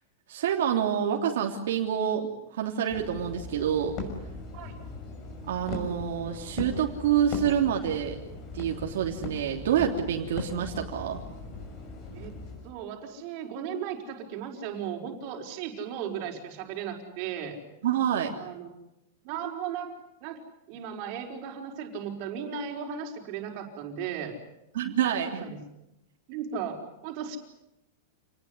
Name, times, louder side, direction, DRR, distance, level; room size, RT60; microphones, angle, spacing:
voice 1, 0.3-3.9 5.5-8.2 8.5-11.2 17.8-18.3 24.7-25.4, right 9 dB, 70° right, 1 dB, 3.2 m, -27 dB
sound 1, 2.9-12.7, left 3 dB, 30° left, 6.0 m, -39 dB
voice 2, 12.6-17.6 18.4-18.7 19.2-19.9 20.2-20.4 20.7-24.3 25.2-25.6 26.3-27.4, right 8 dB, 35° right, 2 dB, 5.2 m, -36 dB
28.5 x 20.0 x 9.8 m, 0.88 s
supercardioid pair, 175°, 0 cm